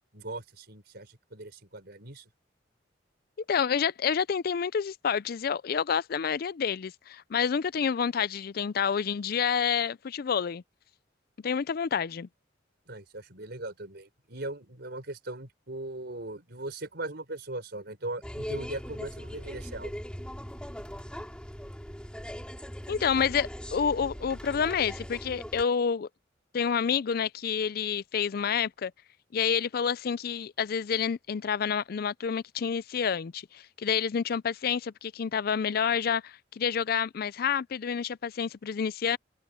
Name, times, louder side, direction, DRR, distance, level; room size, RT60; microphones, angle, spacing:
voice 1, 0.0-2.3 12.9-19.9, right 2 dB, 55° right, 4.9 m, -39 dB
voice 2, 3.5-10.6 11.4-12.3 22.9-26.1 26.5-28.9 29.3-39.2, left 7 dB, 50° left, 0.4 m, -28 dB
sound 1, 18.2-25.6, equal, 5° left, 2.7 m, -40 dB
open air
head